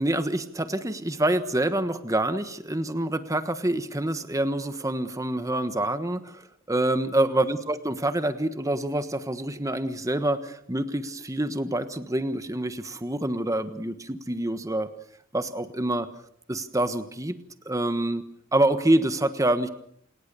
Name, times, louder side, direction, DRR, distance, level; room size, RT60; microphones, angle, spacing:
voice 1, 0.0-14.9 15.3-16.1 16.5-17.4 17.6-18.2 18.5-19.7, right 1 dB, 15° right, 10 dB, 1.3 m, -26 dB
28.5 x 19.5 x 6.9 m, 0.67 s
head